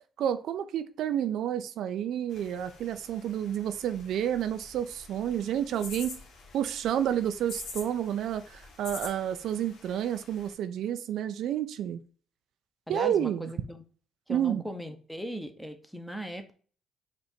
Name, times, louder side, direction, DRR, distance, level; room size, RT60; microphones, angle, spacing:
voice 1, 0.2-6.2 6.5-12.0 12.9-13.5 14.3-14.6, right 10 dB, 70° right, 0.4 m, -30 dB
sound 1, 2.3-10.5, left 3 dB, 70° left, 1.3 m, -47 dB
voice 2, 12.9-13.8 14.3-16.5, equal, ahead, 0.8 m, -38 dB
4.3 x 2.6 x 4.2 m
supercardioid pair, 65°, 0 cm